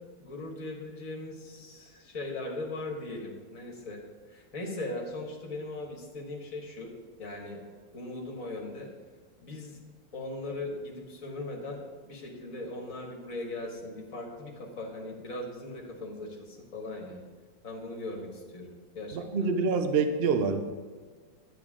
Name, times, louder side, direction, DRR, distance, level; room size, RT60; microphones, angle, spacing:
voice 1, 0.2-4.0 4.3-6.9 7.2-7.6 7.9-8.9 9.4-9.8 10.1-17.2 17.6-19.5, left 2 dB, 45° left, 0 dB, 2.0 m, -39 dB
voice 2, 19.1-20.6, right 4 dB, 75° right, 7 dB, 0.5 m, -26 dB
10.5 x 9.1 x 3.7 m, 1.5 s
omnidirectional pair, 2.0 m